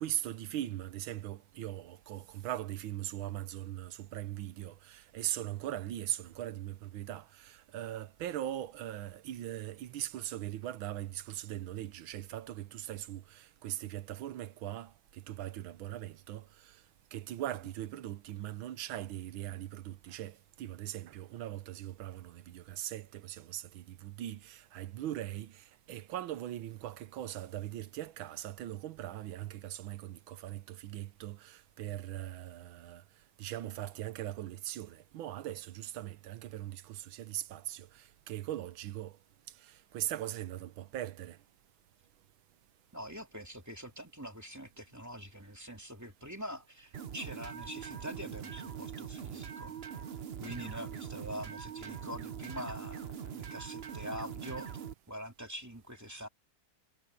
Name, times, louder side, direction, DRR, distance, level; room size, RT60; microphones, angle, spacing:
voice 1, 0.0-14.9 15.3-16.7 17.1-33.0 33.4-39.1 39.7-41.4, right 13 dB, 80° right, 1.6 m, -40 dB
voice 2, 42.9-49.8 50.4-54.7 55.1-56.3, equal, 10° right, 2.3 m, -44 dB
sound 1, 46.9-54.9, right 8 dB, 50° right, 0.7 m, -42 dB
omnidirectional pair, 2.2 m